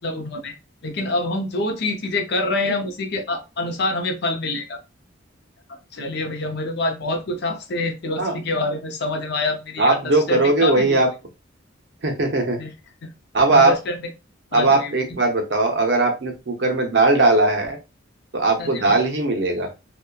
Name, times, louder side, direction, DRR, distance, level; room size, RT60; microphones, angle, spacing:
voice 1, 0.0-0.5 0.8-4.8 5.7-11.0 12.6-12.7 13.0-13.1 13.5-14.1 14.5-14.9 18.6-19.0, left 2 dB, 55° left, 5 dB, 0.5 m, -26 dB
voice 2, 9.8-11.1 12.0-12.6 13.3-13.7 14.5-17.8 18.3-19.7, right 2 dB, 60° right, 3 dB, 0.7 m, -19 dB
2.7 x 2.1 x 2.3 m, 0.27 s
head